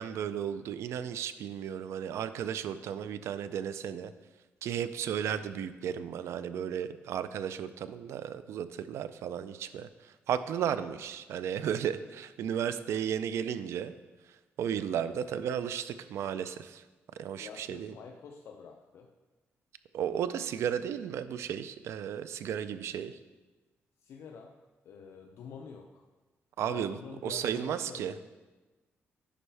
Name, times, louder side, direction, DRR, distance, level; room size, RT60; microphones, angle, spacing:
voice 1, 0.0-4.1 4.6-9.9 10.3-13.9 14.6-16.8 17.2-17.9 19.9-23.1 26.6-28.1, right 9 dB, 90° right, 13 dB, 0.4 m, -34 dB
voice 2, 17.4-19.1 24.0-24.6 24.8-26.1 26.7-28.2, left 6 dB, 70° left, 3 dB, 0.5 m, -47 dB
9.9 x 5.3 x 3.3 m, 1.2 s
wide cardioid pair, 160°, 5 cm